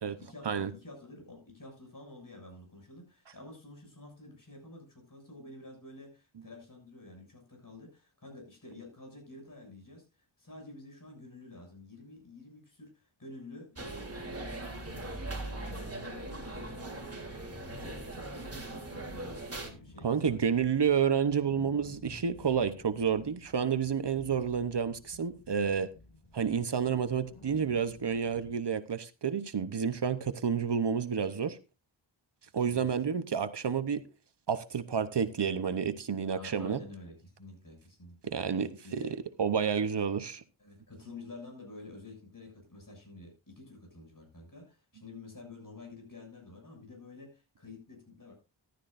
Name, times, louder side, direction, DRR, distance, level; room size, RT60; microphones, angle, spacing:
voice 1, 0.2-17.0 17.6-20.4 32.7-32.9 36.4-38.4 38.8-39.2 40.6-48.3, left 2 dB, 40° left, 6.8 m, -50 dB
sound 1, 13.8-19.7, right 2 dB, 30° right, 3.2 m, -40 dB
sound 2, 14.1-28.5, left 2 dB, 80° left, 3.8 m, -54 dB
voice 2, 20.0-25.9 26.3-31.6 32.5-34.0 34.5-36.8 38.2-39.0 39.4-40.4, right 7 dB, 60° right, 0.9 m, -30 dB
14.5 x 12.0 x 2.6 m
wide cardioid pair, 85°, 47 cm